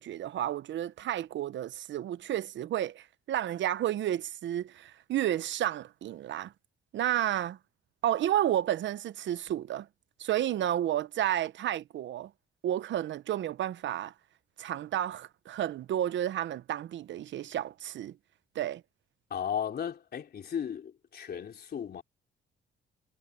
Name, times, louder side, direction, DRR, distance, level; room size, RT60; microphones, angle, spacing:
voice 1, 0.0-6.5 6.9-7.6 8.0-9.9 10.2-12.3 12.6-14.1 14.6-18.2 18.5-18.8, right 12 dB, 70° right, 0.9 m, -31 dB
voice 2, 19.3-22.0, left 8 dB, 55° left, 3.5 m, -35 dB
cardioid pair, 90°, 20 cm